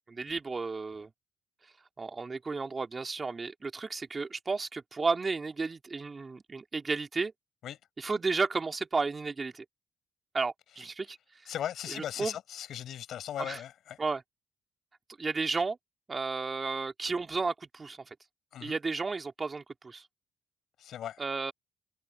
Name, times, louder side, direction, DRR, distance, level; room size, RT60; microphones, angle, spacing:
voice 1, 0.1-1.1 2.0-7.3 8.0-9.6 10.3-11.2 11.9-12.4 13.4-13.6 14.0-14.2 15.2-15.8 16.1-18.1 18.6-20.0 21.2-21.5, right 4 dB, 30° right, 2.8 m, -33 dB
voice 2, 11.5-14.0 18.5-18.8 20.8-21.2, left 10 dB, 70° left, 6.9 m, -38 dB
cardioid pair, 90°, 0 cm